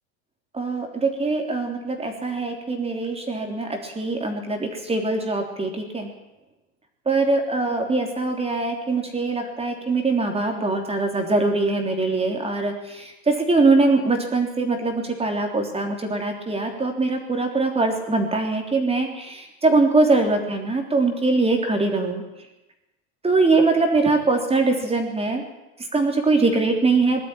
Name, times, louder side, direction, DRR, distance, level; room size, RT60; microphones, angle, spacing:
voice 1, 0.5-6.1 7.1-22.2 23.2-25.4 25.8-27.2, right 3 dB, 15° right, 3 dB, 3.4 m, -22 dB
20.5 x 12.5 x 10.0 m, 0.98 s
supercardioid pair, 135°, 41 cm